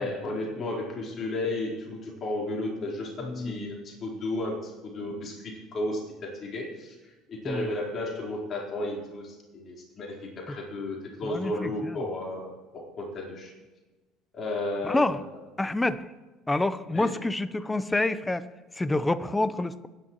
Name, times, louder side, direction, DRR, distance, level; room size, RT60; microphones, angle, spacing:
voice 1, 0.0-13.5 14.3-15.4 16.9-17.2, left 2 dB, 45° left, -1 dB, 4.3 m, -33 dB
voice 2, 3.2-3.6 7.5-7.7 11.2-12.0 14.8-15.2 15.6-16.0 16.5-18.4 18.8-19.9, left 2 dB, 15° left, 15 dB, 0.9 m, -27 dB
25.0 x 11.0 x 3.2 m, 1.2 s
hypercardioid pair, 65°, 0 cm